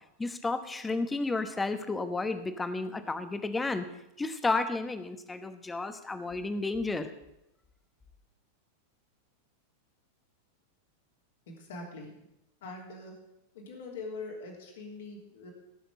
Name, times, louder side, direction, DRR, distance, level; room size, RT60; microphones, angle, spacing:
voice 1, 0.2-3.9 4.2-7.1, left 3 dB, 10° left, 10 dB, 1.1 m, -32 dB
voice 2, 11.5-12.1 12.6-13.1 13.5-15.5, left 3 dB, 60° left, 1 dB, 3.1 m, -42 dB
17.0 x 6.5 x 6.4 m, 0.87 s
figure-of-eight pair, 90°, 0 cm